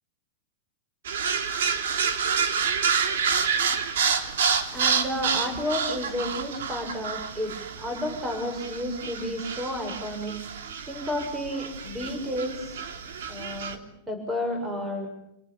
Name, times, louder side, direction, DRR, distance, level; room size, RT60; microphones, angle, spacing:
sound 1, 1.0-13.8, right 6 dB, 75° right, 3.3 m, -28 dB
voice 1, 4.7-10.3 10.9-12.7 13.3-13.8 14.1-15.1, left 1 dB, 10° right, 4 dB, 7.3 m, -31 dB
29.0 x 19.0 x 8.8 m, 0.75 s
supercardioid pair, 160°, 0 cm